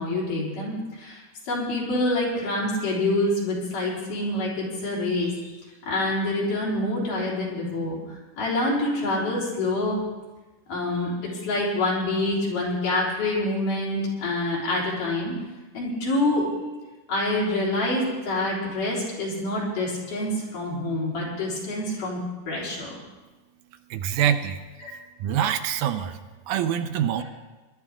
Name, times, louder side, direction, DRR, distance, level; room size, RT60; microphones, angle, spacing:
voice 1, 0.0-5.5 5.9-10.0 10.7-15.4 15.7-16.5 17.1-23.0 24.8-24.9, left 1 dB, 85° left, -5 dB, 5.5 m, -26 dB
voice 2, 23.9-24.6 25.2-26.2 26.5-27.2, right 9 dB, 75° right, 9 dB, 2.0 m, -25 dB
21.5 x 12.0 x 3.7 m, 1.2 s
omnidirectional pair, 3.6 m